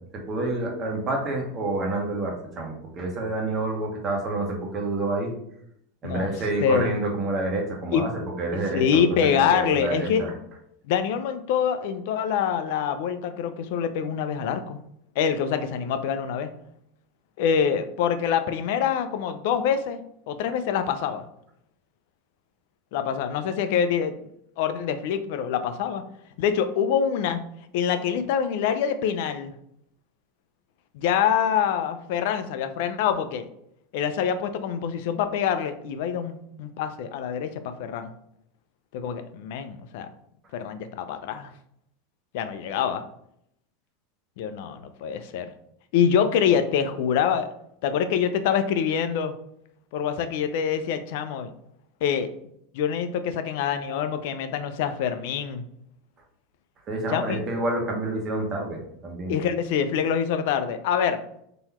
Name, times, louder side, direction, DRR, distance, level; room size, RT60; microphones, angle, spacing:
voice 1, 0.3-5.3 6.0-8.1 8.4-9.0 9.3-10.3 56.9-59.3, right 2 dB, 30° right, 0 dB, 1.2 m, -28 dB
voice 2, 6.6-6.9 7.9-8.1 8.7-10.3 10.9-14.8 15.2-16.5 17.4-20.0 20.3-21.2 22.9-24.1 24.6-26.0 26.4-27.4 27.7-29.5 30.9-33.5 33.9-38.1 38.9-40.1 40.5-41.5 42.3-43.0 44.4-45.5 45.9-47.5 47.8-49.3 49.9-51.5 52.0-52.3 52.7-55.6 57.1-57.4 59.3-61.2, left 8 dB, 65° left, 9 dB, 0.5 m, -25 dB
3.8 x 3.0 x 4.3 m, 0.73 s
supercardioid pair, 140°, 0 cm